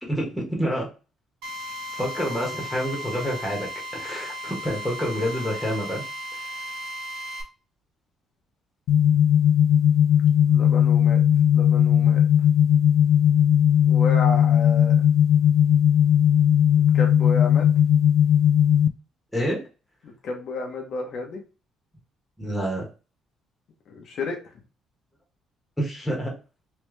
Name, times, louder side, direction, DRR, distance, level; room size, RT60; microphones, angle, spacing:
voice 1, 0.0-0.9 1.9-3.7 3.9-6.0 19.3-19.6 22.4-22.9 25.8-26.3, equal, ahead, -3 dB, 1.4 m, -27 dB
Drill, 1.4-7.4, equal, 90° right, 1.1 m, -35 dB
sound 1, 8.9-18.9, left 9 dB, 85° left, 0.3 m, -18 dB
voice 2, 10.4-11.2 11.5-12.2 13.8-14.9 16.9-17.6 20.2-21.4 23.9-24.4, left 3 dB, 50° left, 1 dB, 0.9 m, -31 dB
3.3 x 3.0 x 3.2 m, 0.32 s
cardioid pair, 145°, 0 cm